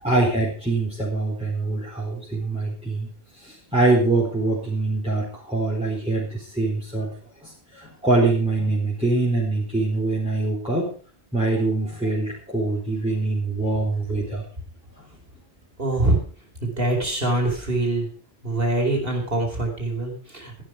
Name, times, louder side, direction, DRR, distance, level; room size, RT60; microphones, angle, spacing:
voice 1, 0.0-3.1 3.4-7.1 7.4-10.9 11.3-14.4, right 2 dB, 5° right, -6 dB, 4.1 m, -24 dB
voice 2, 15.8-16.2 16.6-18.1 18.4-20.6, right 2 dB, 60° right, 2 dB, 4.9 m, -24 dB
14.5 x 12.0 x 5.0 m, 0.40 s
omnidirectional pair, 1.1 m